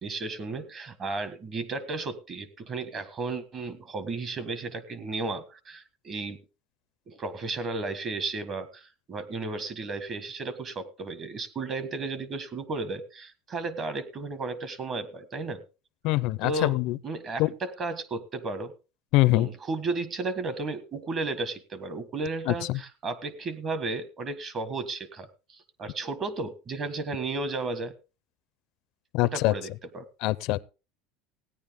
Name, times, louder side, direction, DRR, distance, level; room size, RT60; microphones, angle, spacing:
voice 1, 0.0-6.4 7.1-15.6 16.4-16.8 17.0-18.7 19.3-27.9 29.2-29.7 29.9-30.1, right 3 dB, 30° right, 1.5 m, -34 dB
voice 2, 16.0-17.0 17.4-17.5 19.1-19.5 22.5-22.6 29.1-29.5 30.2-30.6, left 19 dB, 55° left, 0.5 m, -23 dB
17.0 x 10.0 x 3.6 m
cardioid pair, 155°, 0 cm